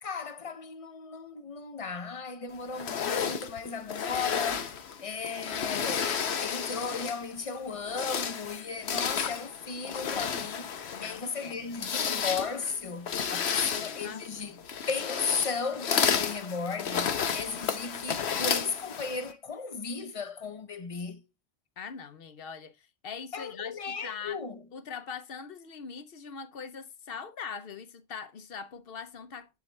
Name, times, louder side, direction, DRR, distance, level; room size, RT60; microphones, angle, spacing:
voice 1, 0.0-14.6 14.9-21.2 23.3-24.6, left 5 dB, 40° left, 0.5 m, -36 dB
sound 1, 2.7-7.3 7.8-19.3, left 7 dB, 90° left, 1.1 m, -32 dB
voice 2, 10.9-11.8 13.4-14.6 21.8-24.4 24.7-29.6, left 6 dB, 65° left, 0.9 m, -42 dB
10.0 x 4.1 x 3.2 m
omnidirectional pair, 1.1 m